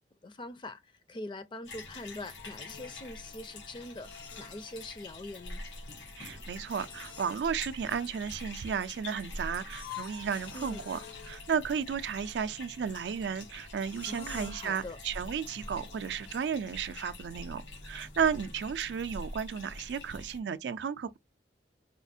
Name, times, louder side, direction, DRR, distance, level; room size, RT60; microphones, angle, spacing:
voice 1, 0.2-4.1 4.4-5.6 10.5-10.9 14.1-15.0, left 2 dB, 25° left, 0.4 m, -43 dB
sound 1, 1.7-20.4, left 2 dB, 90° left, 1.0 m, -46 dB
sound 2, 2.4-16.5, left 7 dB, 65° left, 0.8 m, -51 dB
voice 2, 6.2-11.0 11.3-21.2, right 7 dB, 75° right, 0.4 m, -33 dB
4.2 x 2.4 x 2.6 m
head